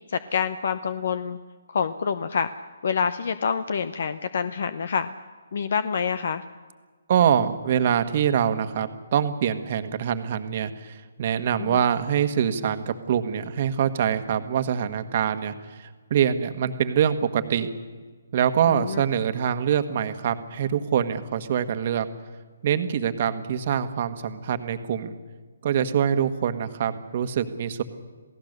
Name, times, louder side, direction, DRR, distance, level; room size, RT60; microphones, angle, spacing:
voice 1, 0.1-1.4 1.7-2.5 2.8-5.1 5.5-6.4 11.6-11.8 18.7-19.0, left 6 dB, 60° left, 13 dB, 0.8 m, -27 dB
voice 2, 7.1-17.7 18.3-22.1 22.6-25.2 25.6-27.8, right 8 dB, 45° right, 9 dB, 1.5 m, -24 dB
28.0 x 17.0 x 6.7 m, 1.4 s
hypercardioid pair, 150°, 0 cm